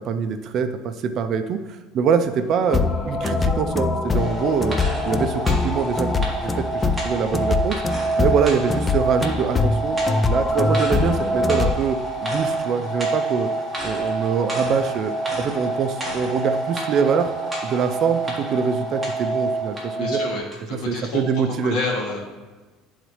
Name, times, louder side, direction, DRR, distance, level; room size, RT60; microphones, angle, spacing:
voice 1, 0.0-4.8 5.0-7.8 8.2-10.0 10.3-13.5 13.8-17.3 17.6-20.2 20.7-21.8, right 6 dB, 45° right, 9 dB, 0.4 m, -24 dB
sound 1, 2.3-20.4, right 3 dB, 75° left, 1.3 m, -28 dB
sound 2, 2.7-11.7, left 4 dB, 15° left, 0.3 m, -23 dB
sound 3, 4.1-20.1 20.5-20.6, equal, 5° right, 1.6 m, -33 dB
voice 2, 19.9-21.2 21.5-22.2, left 3 dB, 60° left, -3 dB, 2.2 m, -28 dB
11.0 x 4.0 x 3.1 m, 1.3 s
cardioid pair, 145°, 0 cm